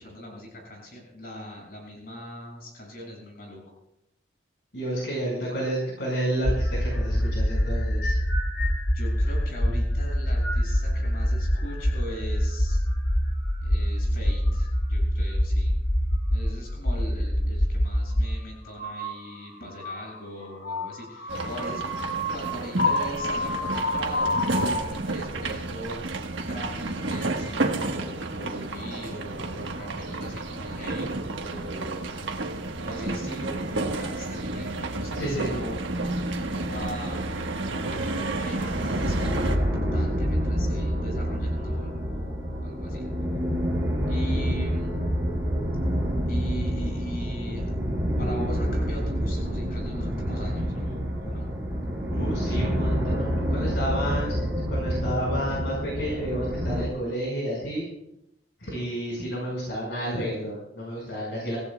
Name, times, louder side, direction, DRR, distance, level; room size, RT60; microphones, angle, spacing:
voice 1, 0.0-3.6 8.9-12.8 13.6-15.7 16.3-21.8 22.3-26.2 26.5-32.1 32.8-35.7 36.2-37.3 37.7-42.3 42.6-43.0 44.0-45.0 46.3-47.7 48.2-51.5, equal, 50° left, -1 dB, 6.7 m, -40 dB
voice 2, 4.7-8.2 35.2-35.5 52.1-57.9 58.6-61.6, right 1 dB, 65° left, -3 dB, 5.2 m, -31 dB
sound 1, 6.4-18.3 18.7-24.8, left 1 dB, 85° left, 2.0 m, -26 dB
sound 2, 21.3-39.6, right 2 dB, 90° right, 1.4 m, -31 dB
sound 3, 38.7-56.8, equal, 10° right, 5.5 m, -27 dB
25.5 x 16.5 x 2.3 m, 0.82 s
head